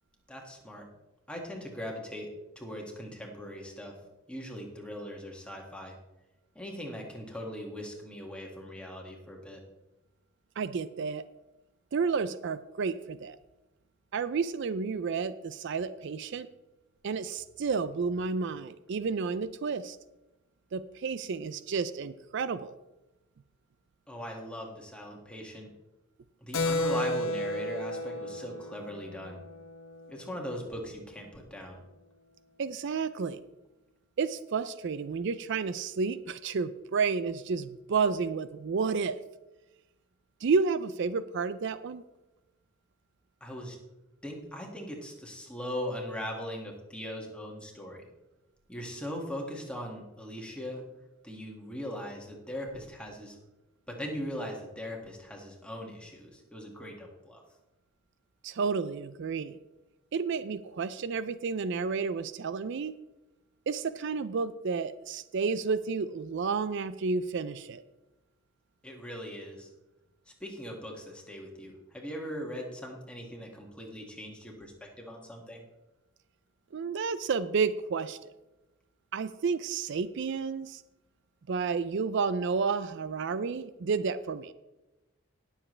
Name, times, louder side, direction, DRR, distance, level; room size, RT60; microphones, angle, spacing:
voice 1, 0.3-0.9 1.3-2.3 2.6-4.0 4.3-5.9 6.5-9.6 24.1-25.7 26.4-29.4 30.1-31.8 43.4-43.8 44.2-48.0 48.7-50.8 51.2-53.4 53.9-57.4 68.8-69.7 70.4-75.6, equal, 5° left, 0 dB, 2.0 m, -40 dB
voice 2, 10.6-11.2 11.9-13.4 14.1-16.5 17.0-20.0 20.7-22.7 32.6-33.4 34.2-39.2 40.4-42.0 58.4-59.6 60.1-63.0 63.7-67.8 76.7-78.2 79.1-80.8 81.5-84.5, right 5 dB, 60° right, 13 dB, 0.4 m, -31 dB
Keyboard (musical), 26.5-30.6, left 2 dB, 85° left, 1.1 m, -33 dB
18.5 x 7.2 x 3.3 m, 1.0 s
head